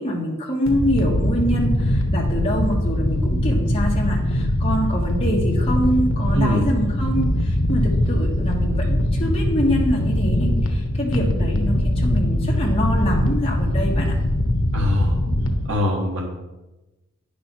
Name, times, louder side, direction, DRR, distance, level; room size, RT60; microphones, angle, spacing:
voice 1, 0.0-14.2, equal, 25° left, -3 dB, 1.6 m, -25 dB
sound 1, 0.7-15.7, left 1 dB, 70° left, 1.1 m, -21 dB
voice 2, 14.7-15.2 15.7-16.3, left 1 dB, 65° right, -2 dB, 1.3 m, -22 dB
9.5 x 5.1 x 6.0 m, 1.0 s
head